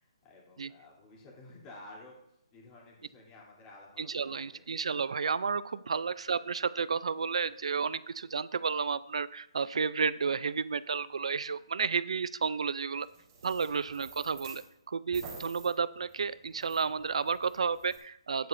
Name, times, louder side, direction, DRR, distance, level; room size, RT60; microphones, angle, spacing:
voice 1, 0.0-4.6 5.8-6.0 7.4-7.7 9.6-9.7, left 2 dB, 20° left, -3 dB, 3.0 m, -53 dB
voice 2, 4.0-13.1 13.4-14.6 14.9-18.5, right 5 dB, 75° right, 17 dB, 0.4 m, -32 dB
sound 1, 13.0-14.7 15.1-18.0, right 4 dB, 30° right, 3.1 m, -50 dB
12.0 x 10.5 x 2.6 m, 0.77 s
hypercardioid pair, 165°, 3 cm